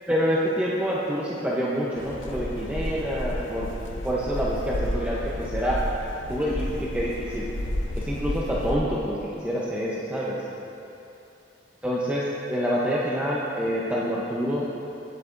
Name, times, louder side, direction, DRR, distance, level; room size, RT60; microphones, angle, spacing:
voice 1, 0.1-3.7 4.0-5.8 6.3-7.4 8.0-10.4 11.8-14.7, equal, 5° right, -7 dB, 0.7 m, -27 dB
sound 1, 1.9-8.7, left 1 dB, 90° left, 0.7 m, -31 dB
15.0 x 8.1 x 2.5 m, 2.9 s
head